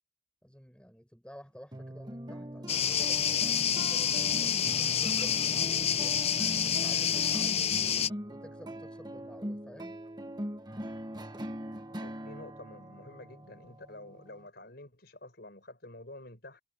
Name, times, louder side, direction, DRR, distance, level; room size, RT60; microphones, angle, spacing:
voice 1, 0.4-6.2 6.6-10.0, equal, 5° left, 6.0 m, -51 dB
sound 1, 1.7-14.5, equal, 20° right, 1.4 m, -41 dB
sound 2, 2.7-8.1, left 8 dB, 35° left, 0.7 m, -28 dB
voice 2, 11.9-16.6, left 1 dB, 55° left, 5.7 m, -49 dB
head